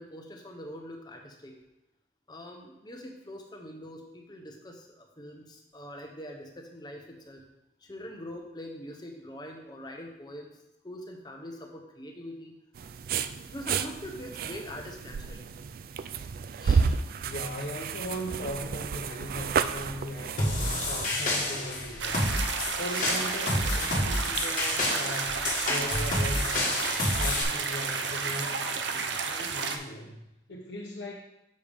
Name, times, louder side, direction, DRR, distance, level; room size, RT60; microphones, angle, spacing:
voice 1, 0.0-1.6 2.3-7.4 7.8-12.5 13.4-15.5 16.6-16.9, equal, 25° left, 2 dB, 0.9 m, -43 dB
sound 1, 12.7-21.1, right 5 dB, 55° right, 0.3 m, -31 dB
voice 2, 17.2-20.5 20.9-22.3 22.8-26.8 27.2-31.1, equal, 70° left, -3 dB, 0.8 m, -39 dB
sound 2, 20.4-27.4, left 1 dB, 45° left, 1.5 m, -29 dB
sound 3, 22.0-29.8, right 5 dB, 85° right, 0.6 m, -32 dB
7.0 x 6.5 x 3.5 m, 0.91 s
head